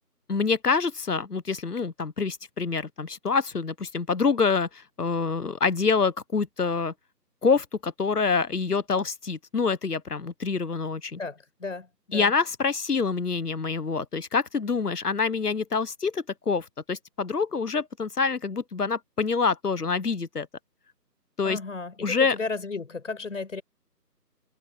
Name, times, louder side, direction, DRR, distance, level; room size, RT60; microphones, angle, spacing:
voice 1, 0.3-6.9 7.4-11.2 12.1-20.5 21.4-21.6 22.0-22.3, left 5 dB, 65° left, 1.4 m, -26 dB
voice 2, 11.2-12.3 21.4-23.6, left 4 dB, 50° left, 6.4 m, -34 dB
figure-of-eight pair, 165°, 49 cm